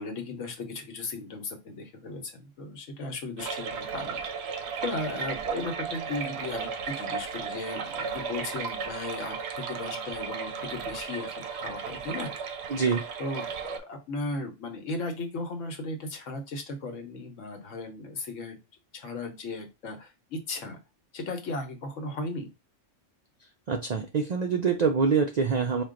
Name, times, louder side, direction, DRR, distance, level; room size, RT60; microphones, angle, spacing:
voice 1, 0.0-4.2 4.8-12.3 13.2-18.6 18.9-20.8 21.1-22.5, left 2 dB, 75° left, 5 dB, 1.2 m, -36 dB
sound 1, 3.4-13.8, right 6 dB, 65° right, 0.7 m, -35 dB
voice 2, 12.7-13.0 23.7-25.8, right 5 dB, 85° right, 5 dB, 0.3 m, -25 dB
4.4 x 2.2 x 3.7 m, 0.27 s
omnidirectional pair, 1.3 m